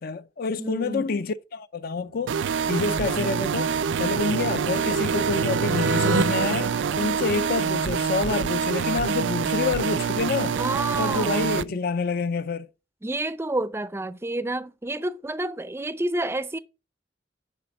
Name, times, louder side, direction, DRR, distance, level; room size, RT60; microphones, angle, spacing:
voice 1, 0.0-10.6 11.0-12.7, left 4 dB, 50° left, 0.4 m, -28 dB
voice 2, 0.6-1.1 10.5-11.5 13.0-16.6, right 2 dB, 15° right, 0.5 m, -29 dB
sound 1, 2.1-7.9, right 4 dB, 85° right, 0.8 m, -30 dB
sound 2, 2.3-11.6, right 6 dB, 70° right, 0.4 m, -26 dB
10.0 x 4.3 x 5.1 m
head